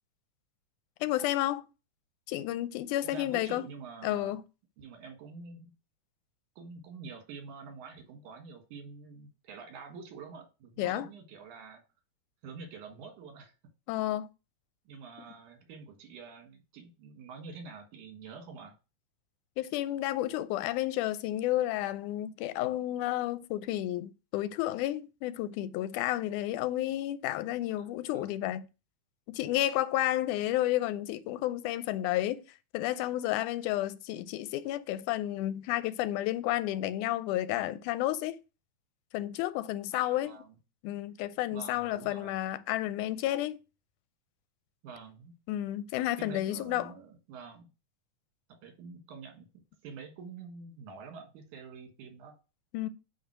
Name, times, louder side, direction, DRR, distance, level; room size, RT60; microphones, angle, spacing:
voice 1, 1.0-1.6 2.3-3.7 4.0-4.4 10.8-11.1 13.9-14.3 19.6-28.7 29.3-32.4 32.7-38.4 39.1-40.4 40.8-43.6 45.5-46.9 52.7-52.9, left 14 dB, 90° left, 2.0 m, -31 dB
voice 2, 3.0-4.4 4.8-5.7 6.6-11.8 12.4-13.5 14.9-18.8 27.7-27.9 28.1-28.3 39.9-40.6 41.5-42.4 44.8-45.3 46.2-47.7 48.6-52.3, right 5 dB, 80° right, 3.0 m, -47 dB
8.5 x 3.0 x 5.9 m
omnidirectional pair, 3.5 m